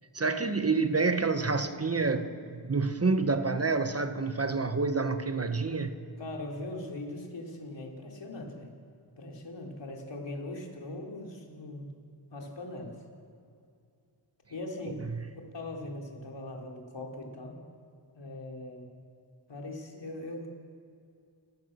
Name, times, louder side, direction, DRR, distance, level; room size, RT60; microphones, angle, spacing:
voice 1, 0.1-6.0 15.1-15.4, right 4 dB, 30° right, 1.3 m, -28 dB
voice 2, 6.2-8.7 9.2-11.9 12.3-13.0 14.5-15.1 15.5-17.6 18.1-18.9 19.5-20.5, left 2 dB, 65° left, 4.2 m, -40 dB
29.5 x 15.5 x 7.0 m
wide cardioid pair, 80°, 46 cm